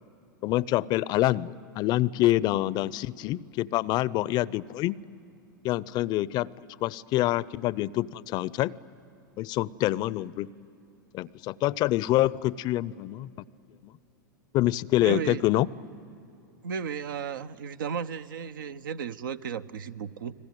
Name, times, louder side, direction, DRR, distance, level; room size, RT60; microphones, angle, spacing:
voice 1, 0.4-5.0 5.6-8.7 9.4-10.5 11.1-13.3 13.8-13.9 14.5-15.7, left 16 dB, 40° left, 0.5 m, -26 dB
voice 2, 15.0-15.4 16.6-20.3, right 7 dB, 75° right, 0.9 m, -34 dB
30.0 x 21.0 x 9.2 m
hypercardioid pair, 105°, 11 cm